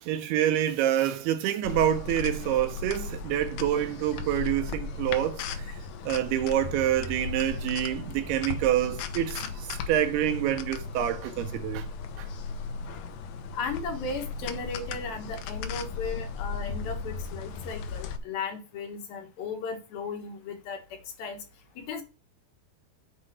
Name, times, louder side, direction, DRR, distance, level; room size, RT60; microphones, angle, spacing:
voice 1, 0.0-5.8 6.0-11.9 12.2-12.3, right 11 dB, 80° right, 2.5 m, -27 dB
sound 1, 1.6-18.2, left 5 dB, 85° left, 1.9 m, -36 dB
voice 2, 13.5-21.4 21.8-22.0, left 4 dB, 65° left, 2.9 m, -36 dB
7.6 x 4.2 x 6.1 m
omnidirectional pair, 4.9 m